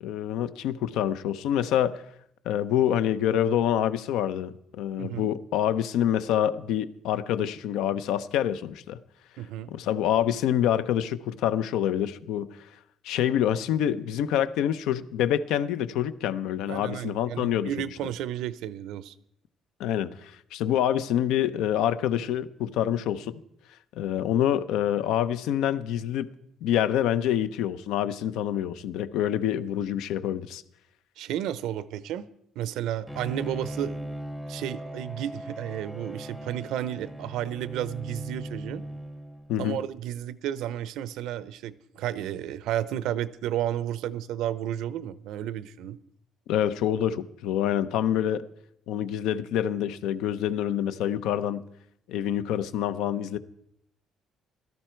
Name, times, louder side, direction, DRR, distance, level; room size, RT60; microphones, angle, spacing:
voice 1, 0.0-2.0 2.4-9.0 9.7-12.5 13.0-17.9 19.8-23.4 24.0-26.3 26.6-30.6 39.5-39.8 46.5-48.5 48.9-51.6 52.1-53.4, left 10 dB, 90° left, 0.7 m, -26 dB
voice 2, 5.0-5.3 9.4-9.7 16.7-19.1 31.2-32.3 32.6-34.0 34.5-38.8 39.6-46.0, right 11 dB, 80° right, 0.7 m, -32 dB
Bowed string instrument, 33.1-39.7, right 1 dB, ahead, 0.6 m, -39 dB
16.5 x 13.0 x 4.5 m
cardioid pair, 170°, 0 cm